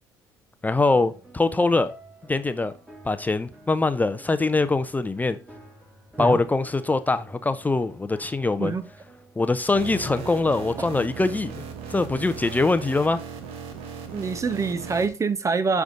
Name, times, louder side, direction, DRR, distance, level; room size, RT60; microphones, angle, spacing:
voice 1, 0.6-1.9 2.3-2.7 3.0-5.4 6.2-8.7 9.4-11.6 11.9-13.2, left 3 dB, 15° left, 0.6 m, -23 dB
sound 1, 0.9-11.3, right 1 dB, 10° right, 2.2 m, -50 dB
sound 2, 9.7-15.1, right 6 dB, 60° right, 1.2 m, -37 dB
voice 2, 14.1-15.8, right 4 dB, 30° right, 0.7 m, -25 dB
10.0 x 3.6 x 3.8 m
figure-of-eight pair, 55°, 11 cm